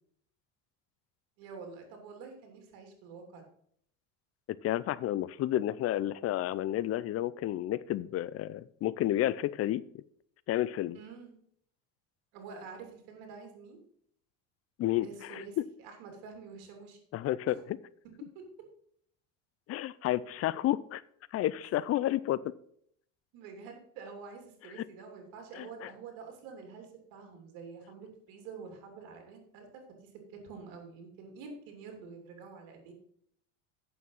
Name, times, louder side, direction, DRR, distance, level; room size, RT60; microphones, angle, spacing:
voice 1, 1.4-3.4 10.9-11.3 12.3-13.8 15.0-17.0 17.5-17.6 18.3-18.4 23.3-32.9, right 5 dB, 75° right, 4 dB, 3.0 m, -47 dB
voice 2, 4.6-10.0 10.5-11.0 14.8-15.6 17.1-17.6 19.7-21.0 21.3-22.4 24.8-24.9 25.5-25.9, left 13 dB, 45° left, 19 dB, 0.5 m, -31 dB
8.4 x 7.0 x 5.5 m, 0.67 s
supercardioid pair, 110°, 35 cm